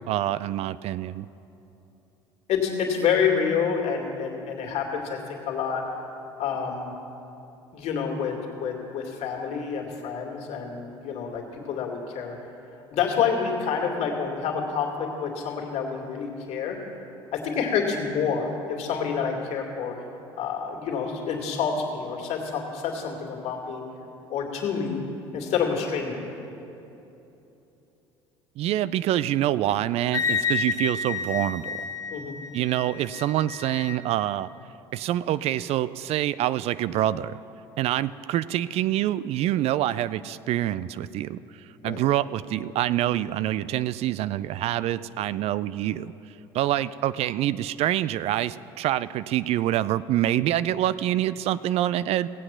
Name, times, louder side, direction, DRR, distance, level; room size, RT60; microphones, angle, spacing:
voice 1, 0.1-1.3 28.6-31.7 32.5-34.5 34.9-37.4 37.8-46.1 46.5-52.3, right 13 dB, 55° right, 17 dB, 0.4 m, -26 dB
voice 2, 2.5-5.8 6.4-6.9 7.7-12.4 12.9-16.8 17.3-19.9 20.4-23.8 24.3-25.0 25.3-26.2 32.1-32.4 41.8-42.0, left 6 dB, 60° left, 1 dB, 2.3 m, -28 dB
Wind instrument woodwind instrument, 30.1-34.0, left 5 dB, 25° left, 1.1 m, -30 dB
17.5 x 7.8 x 5.8 m, 3.0 s
hypercardioid pair, 65°, 13 cm